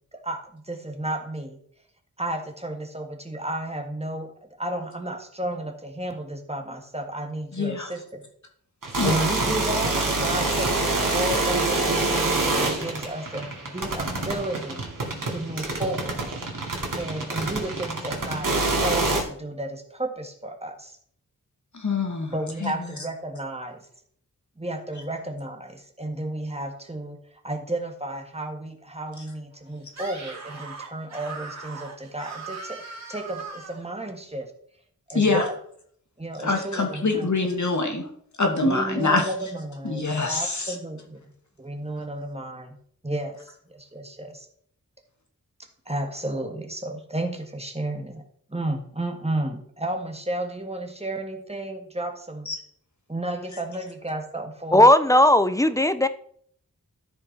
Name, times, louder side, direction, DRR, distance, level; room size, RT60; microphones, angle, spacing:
voice 1, 0.1-1.6 2.2-4.3 4.6-8.2 9.0-14.8 15.3-16.2 17.0-21.0 22.3-23.9 24.6-27.2 27.4-32.8 33.1-34.5 35.1-35.6 36.2-37.5 38.6-41.3 41.6-42.8 43.0-44.5 45.9-48.2 48.5-52.5 53.1-54.9, right 1 dB, 20° right, 1.7 m, -32 dB
voice 2, 7.5-7.9 8.9-9.2 21.7-22.3 22.6-22.7 35.1-35.4 36.4-38.0 38.4-39.2 39.8-40.7 52.5-52.6, left 3 dB, 55° left, 2.3 m, -24 dB
sound 1, 8.8-19.2, right 2 dB, 65° right, 2.4 m, -26 dB
Screaming, 29.9-33.8, right 4 dB, 50° right, 2.8 m, -39 dB
voice 3, 54.7-56.1, left 1 dB, 10° left, 0.6 m, -16 dB
13.0 x 5.4 x 4.6 m
wide cardioid pair, 75°, 35 cm